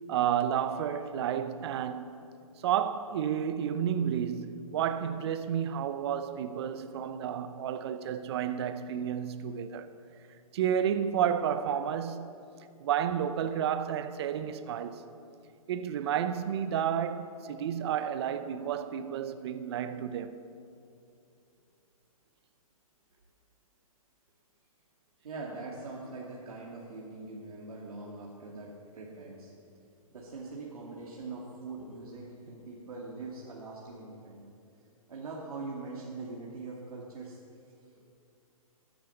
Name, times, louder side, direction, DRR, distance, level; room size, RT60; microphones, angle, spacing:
voice 1, 0.1-2.2 2.6-9.9 10.5-12.3 12.8-15.0 15.7-20.4, right 9 dB, 45° right, 0.7 m, -31 dB
voice 2, 25.2-29.5 30.1-34.4 35.1-37.4, right 3 dB, 80° right, 2.3 m, -42 dB
13.5 x 10.0 x 7.1 m
hypercardioid pair, 155°, 19 cm